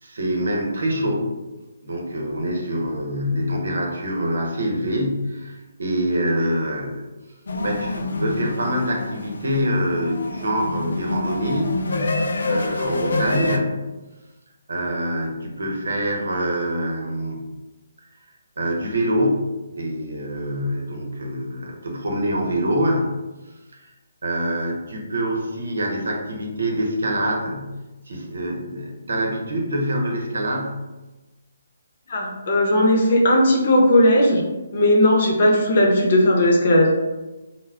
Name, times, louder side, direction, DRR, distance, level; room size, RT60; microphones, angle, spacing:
voice 1, 0.0-1.3 1.8-7.1 7.6-11.8 12.4-13.9 14.7-17.5 18.6-23.1 23.8-23.9 24.2-27.8 28.1-30.8, equal, 75° right, 0 dB, 0.7 m, -25 dB
sound 1, 7.5-13.6, left 2 dB, 75° left, 0.3 m, -27 dB
voice 2, 32.1-34.4 34.7-36.9, left 1 dB, 50° left, -1 dB, 0.7 m, -17 dB
2.2 x 2.0 x 3.4 m, 1.1 s
hypercardioid pair, 150°, 0 cm